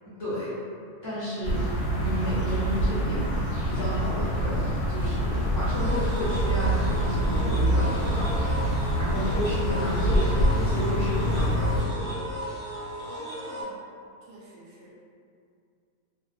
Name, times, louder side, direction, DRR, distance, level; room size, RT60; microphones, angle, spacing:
voice 1, 1.0-1.6 1.9-8.3 9.0-12.1, equal, 20° left, -12 dB, 0.8 m, -32 dB
sound 1, 1.4-11.8, equal, 70° left, 1.0 m, -25 dB
sound 2, 5.7-13.6, equal, 60° right, 0.9 m, -36 dB
voice 2, 13.0-13.8 14.2-15.0, right 1 dB, 80° right, -7 dB, 1.2 m, -47 dB
2.8 x 2.0 x 2.3 m, 2.3 s
omnidirectional pair, 1.7 m